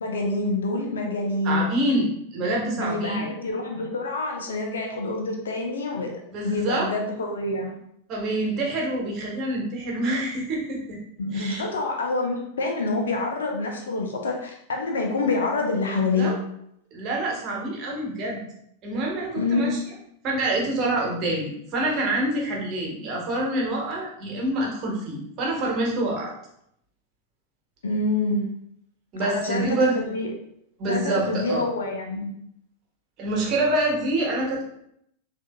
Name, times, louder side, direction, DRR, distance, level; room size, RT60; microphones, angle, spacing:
voice 1, 0.0-1.7 2.8-6.1 6.4-7.8 11.2-16.4 19.3-19.8 27.8-28.5 29.2-30.3 30.9-32.3, left 3 dB, 65° left, 2 dB, 0.7 m, -27 dB
voice 2, 1.4-3.3 6.3-6.9 8.1-11.0 11.3-11.6 16.2-16.4 16.9-18.4 18.8-19.8 20.2-26.3 29.1-29.9 30.8-31.6 33.2-34.6, right 2 dB, 35° right, -2 dB, 1.2 m, -26 dB
6.2 x 2.7 x 2.2 m, 0.73 s
figure-of-eight pair, 90°, 0 cm